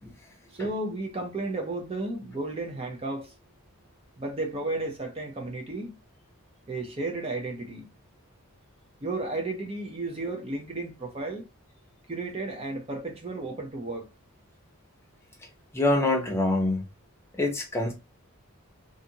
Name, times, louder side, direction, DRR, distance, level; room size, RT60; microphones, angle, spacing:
voice 1, 0.5-3.3 4.2-5.9 6.7-7.9 9.0-11.5 12.1-14.1, right 2 dB, 25° right, 0.5 m, -33 dB
voice 2, 15.7-16.8 17.4-17.9, left 2 dB, 10° left, 0.7 m, -25 dB
2.6 x 2.5 x 2.7 m
head